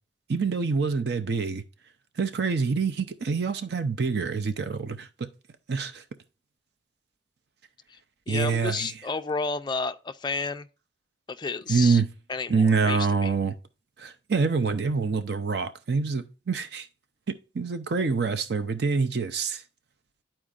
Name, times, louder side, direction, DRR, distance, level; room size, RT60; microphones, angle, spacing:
voice 1, 0.3-1.6 2.2-5.3 5.7-6.0 8.3-8.9 11.7-12.1 12.5-13.5 14.0-16.9 17.3-19.6, right 4 dB, 55° right, 0.5 m, -26 dB
voice 2, 8.3-10.7 11.4-12.0 12.3-13.3, left 4 dB, 25° left, 0.3 m, -31 dB
11.5 x 4.4 x 2.4 m
head